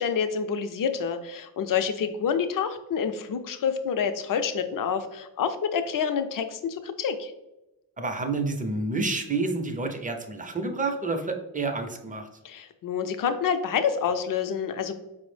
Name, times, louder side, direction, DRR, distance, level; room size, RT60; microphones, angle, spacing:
voice 1, 0.0-7.3 12.4-14.9, left 7 dB, 55° left, 9 dB, 0.5 m, -28 dB
voice 2, 8.0-12.3, right 3 dB, 20° right, 5 dB, 0.5 m, -29 dB
4.5 x 2.0 x 3.1 m, 0.95 s
cardioid pair, 70°, 39 cm